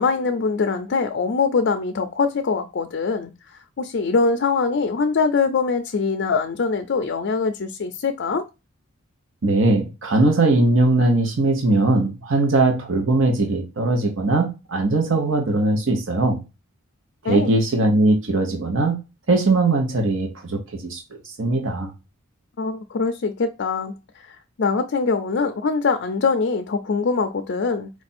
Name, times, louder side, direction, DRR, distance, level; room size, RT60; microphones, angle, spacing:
voice 1, 0.0-3.3 3.8-8.4 17.2-17.5 22.6-27.9, left 4 dB, 55° left, 0.4 m, -23 dB
voice 2, 9.4-16.4 17.2-19.0 19.3-21.9, right 2 dB, 60° right, 0.9 m, -20 dB
4.6 x 2.5 x 4.2 m
head